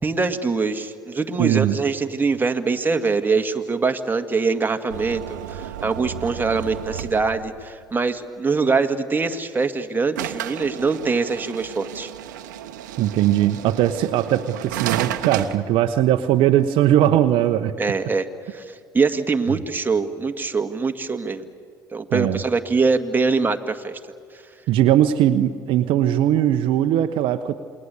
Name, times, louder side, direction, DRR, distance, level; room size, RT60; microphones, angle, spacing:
voice 1, 0.0-12.1 17.8-21.5 21.9-24.0, right 4 dB, 20° right, 5 dB, 1.9 m, -23 dB
voice 2, 1.4-1.7 13.0-17.7 19.5-19.6 22.1-22.4 24.7-27.5, right 12 dB, 60° right, 9 dB, 1.0 m, -19 dB
sound 1, 4.9-7.6 10.2-15.6, right 12 dB, 80° right, 1.1 m, -32 dB
28.0 x 22.0 x 8.3 m, 2.2 s
hypercardioid pair, 65°, 10 cm